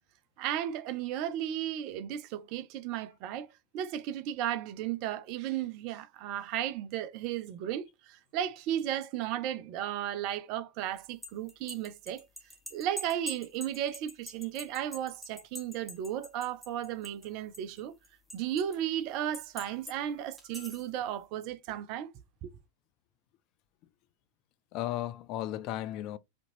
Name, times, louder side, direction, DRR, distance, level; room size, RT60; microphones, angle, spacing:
voice 1, 0.4-3.5 3.7-12.3 12.7-17.9 18.3-22.1 22.4-22.5, right 11 dB, 45° right, 0.6 m, -34 dB
sound 1, 11.0-17.3 17.5-18.8 19.3-20.0 20.4-20.9, equal, ahead, 1.5 m, -44 dB
voice 2, 24.7-26.2, left 13 dB, 40° left, 0.5 m, -35 dB
5.1 x 2.9 x 2.7 m
figure-of-eight pair, 90°, 0 cm